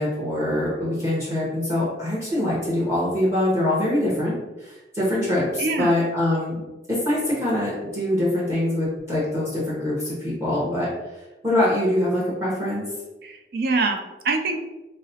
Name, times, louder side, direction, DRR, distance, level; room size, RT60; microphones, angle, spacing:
voice 1, 0.0-6.6 6.9-10.9 11.4-12.9, left 1 dB, 15° right, -8 dB, 0.9 m, -24 dB
voice 2, 5.6-6.0 13.2-14.6, right 3 dB, 55° right, 5 dB, 0.4 m, -25 dB
4.8 x 2.0 x 2.7 m, 1.1 s
head